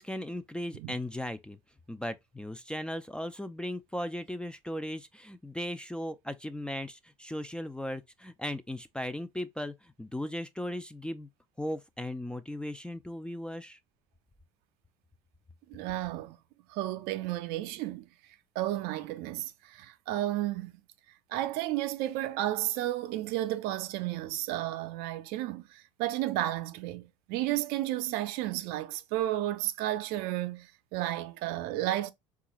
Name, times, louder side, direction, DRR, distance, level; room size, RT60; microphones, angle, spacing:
voice 1, 0.0-1.6 1.9-11.3 11.6-13.8, left 1 dB, 5° left, 0.4 m, -37 dB
voice 2, 15.7-16.4 16.7-18.1 18.6-20.7 21.3-32.1, right 14 dB, 65° right, 0.5 m, -32 dB
3.7 x 2.4 x 2.9 m
hypercardioid pair, 85°, 17 cm